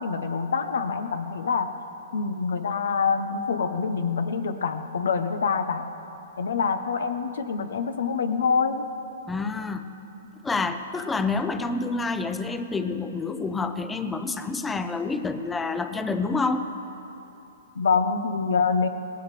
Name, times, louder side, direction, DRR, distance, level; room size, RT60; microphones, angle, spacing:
voice 1, 0.0-1.8 2.1-5.9 6.4-8.9 17.7-18.9, left 5 dB, 80° left, 9 dB, 1.0 m, -25 dB
voice 2, 9.3-9.9 10.4-16.7, left 3 dB, 10° left, 10 dB, 0.7 m, -28 dB
18.5 x 17.0 x 3.4 m, 3.0 s
hypercardioid pair, 140°, 0 cm